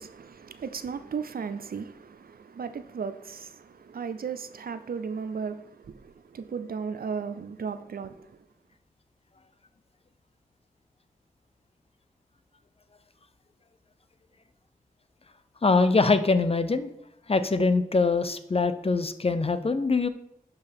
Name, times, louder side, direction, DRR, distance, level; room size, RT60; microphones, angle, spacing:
voice 1, 0.0-8.3, right 6 dB, 80° right, 0.5 m, -36 dB
voice 2, 15.6-16.9 17.3-20.1, left 3 dB, 40° left, 0.6 m, -23 dB
12.0 x 4.6 x 3.5 m
wide cardioid pair, 50°, 15 cm